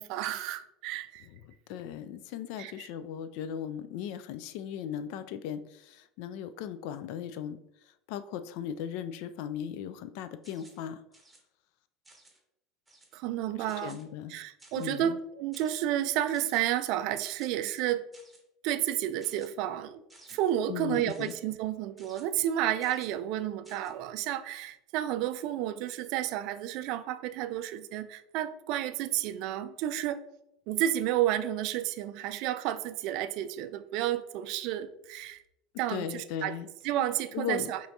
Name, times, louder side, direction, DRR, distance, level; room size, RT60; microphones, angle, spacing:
voice 1, 0.0-1.3 2.6-2.9 13.1-14.0 14.3-18.1 18.6-20.0 20.3-30.2 30.7-35.4 35.8-36.6 36.8-37.8, right 12 dB, 60° right, 12 dB, 0.3 m, -31 dB
voice 2, 1.3-7.6 8.1-11.0 13.8-14.3 14.8-15.2 20.7-21.3 35.9-36.7 37.3-37.7, left 9 dB, 60° left, 12 dB, 0.3 m, -37 dB
sound 1, 10.4-10.8 11.1-11.4 12.0-12.4 12.9-13.2 13.7-14.0 14.6-15.0 15.5-15.8 16.3-16.6 17.2-17.5 18.1-18.4 19.2-19.5 20.1-20.4 21.1-21.4 22.0-22.2 22.8-23.1 23.6-23.9, right 2 dB, 10° right, 1.1 m, -56 dB
5.5 x 3.0 x 2.7 m, 0.83 s
hypercardioid pair, 75°, 0 cm